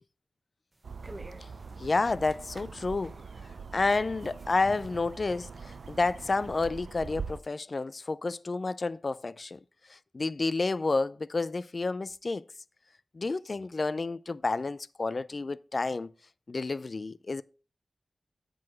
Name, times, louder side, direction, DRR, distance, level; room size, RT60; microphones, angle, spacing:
sound 1, 0.7-6.7, right 1 dB, 25° right, 0.7 m, -52 dB
sound 2, 0.8-7.4, right 5 dB, 85° right, 0.4 m, -43 dB
voice 1, 1.8-3.2 3.7-9.6 9.9-12.4 13.1-16.1 16.5-17.4, left 3 dB, 50° left, 0.3 m, -30 dB
7.7 x 3.9 x 5.7 m
wide cardioid pair, 75°, 0 cm